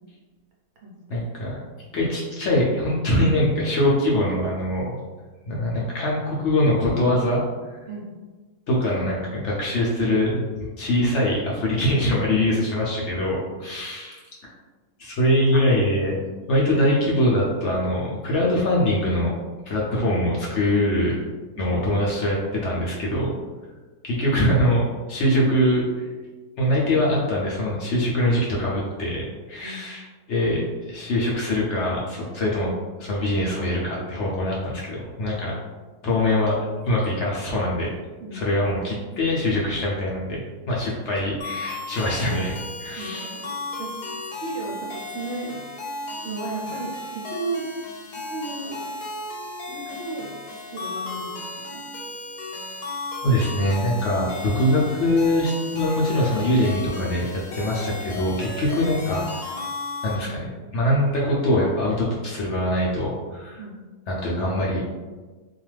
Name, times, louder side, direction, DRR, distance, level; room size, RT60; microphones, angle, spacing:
voice 1, 1.1-1.6 1.9-5.0 5.5-7.4 7.7-7.8 8.7-10.4 10.8-14.5 15.0-16.2 16.5-19.3 19.7-21.2 21.6-23.3 24.0-26.1 26.6-30.0 30.3-32.7 33.0-35.5 36.0-36.6 36.8-37.9 38.3-40.4 40.7-43.3 53.2-59.5 60.0-63.6 64.1-64.8, left 1 dB, 70° left, -5 dB, 0.7 m, -23 dB
voice 2, 12.5-12.9 21.6-21.9 29.6-29.9 35.3-35.6 38.2-38.6 43.0-43.5 43.8-45.5 46.2-47.7 48.1-48.9 49.7-50.3 50.7-51.5 51.7-51.8 57.7-57.8 63.6-63.8, right 3 dB, 65° right, -2 dB, 0.7 m, -35 dB
sound 1, 41.4-60.2, left 2 dB, 90° left, 1.2 m, -35 dB
2.4 x 2.3 x 3.1 m, 1.3 s
omnidirectional pair, 1.7 m